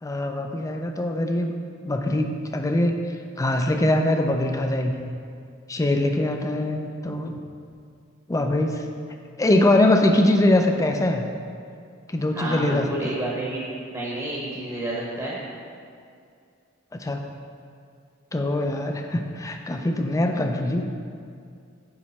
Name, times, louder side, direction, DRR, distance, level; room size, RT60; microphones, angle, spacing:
voice 1, 0.0-1.6 1.8-3.0 3.4-5.1 5.7-7.3 8.3-8.9 9.4-11.2 12.1-13.2 16.9-17.2 18.3-20.8, left 1 dB, 15° left, 4 dB, 0.4 m, -22 dB
voice 2, 12.3-13.6 13.9-15.4, right 1 dB, 20° right, -5 dB, 0.9 m, -30 dB
8.5 x 3.1 x 4.2 m, 2.3 s
head